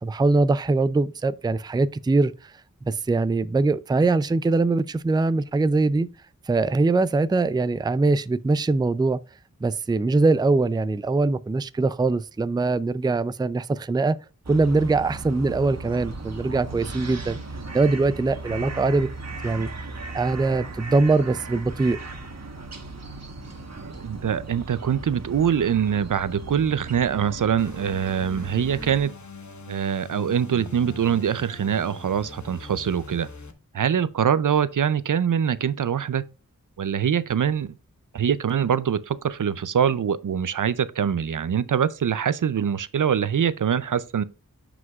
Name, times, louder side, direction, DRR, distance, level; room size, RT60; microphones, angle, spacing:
voice 1, 0.0-2.5 2.9-6.1 6.5-9.2 9.6-14.2 14.5-17.4 17.7-19.1 19.4-19.7 20.1-22.0, right 3 dB, 15° right, 0.4 m, -22 dB
sound 1, 14.4-29.0, right 3 dB, 55° right, 1.3 m, -37 dB
voice 2, 23.8-29.1 29.7-33.3 33.7-36.3 36.8-37.7 38.1-44.2, right 8 dB, 70° right, 0.5 m, -24 dB
sound 2, 27.6-33.5, left 3 dB, 60° left, 1.1 m, -42 dB
9.5 x 5.0 x 2.4 m
wide cardioid pair, 50°, 33 cm